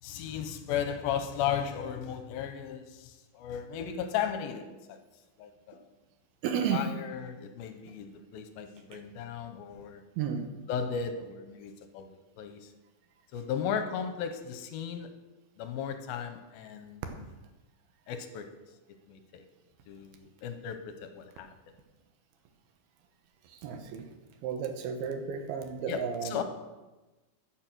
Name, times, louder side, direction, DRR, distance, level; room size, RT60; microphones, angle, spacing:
voice 1, 0.0-5.0 5.4-5.9 6.7-10.0 10.7-12.1 12.4-12.7 13.3-15.1 15.6-17.2 18.1-18.5 19.1-19.4 19.9-21.5 25.9-26.4, left 8 dB, 80° left, 8 dB, 2.6 m, -35 dB
voice 2, 6.4-6.8 10.2-10.5 23.6-24.1 24.4-26.4, right 7 dB, 80° right, 6 dB, 3.0 m, -32 dB
13.0 x 6.8 x 6.1 m, 1.1 s
omnidirectional pair, 4.4 m